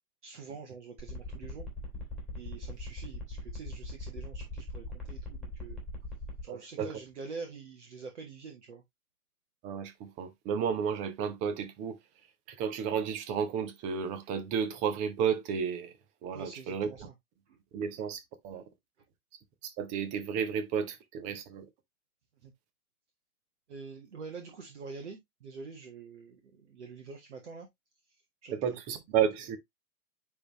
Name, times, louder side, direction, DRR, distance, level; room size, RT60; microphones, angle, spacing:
voice 1, 0.2-1.7 2.3-5.8 6.4-8.8 16.3-17.1 17.5-17.6 17.9-18.0 21.3-21.4 22.4-22.5 23.7-27.7 28.4-29.0, right 4 dB, 50° right, 1.7 m, -46 dB
sound 1, 1.0-6.4, left 2 dB, ahead, 2.9 m, -40 dB
voice 2, 6.5-6.9 9.6-12.0 12.5-15.9 16.2-16.9 17.7-18.6 19.6-21.7 28.5-29.6, right 7 dB, 15° right, 0.8 m, -32 dB
9.7 x 3.7 x 3.0 m
figure-of-eight pair, 115°, 44 cm